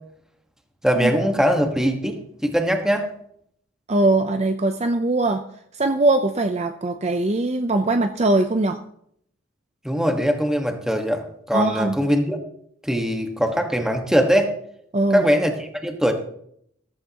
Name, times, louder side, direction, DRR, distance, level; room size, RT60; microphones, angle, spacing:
voice 1, 0.8-3.1 9.8-12.4 12.8-14.5 15.1-16.1, equal, 5° right, 4 dB, 1.4 m, -21 dB
voice 2, 3.9-5.4 5.7-8.8 11.5-12.0 14.9-15.3, right 2 dB, 30° right, 8 dB, 0.5 m, -21 dB
14.5 x 14.5 x 2.9 m, 0.69 s
head